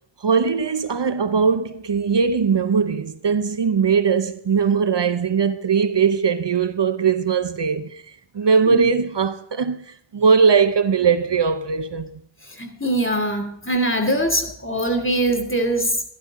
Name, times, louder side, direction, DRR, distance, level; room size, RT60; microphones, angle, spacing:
voice 1, 0.2-7.9 8.3-9.8 10.1-12.1, right 6 dB, 60° right, 0.8 m, -20 dB
voice 2, 12.6-16.0, right 1 dB, 25° left, 2.6 m, -22 dB
12.5 x 12.0 x 3.7 m
wide cardioid pair, 45°, 48 cm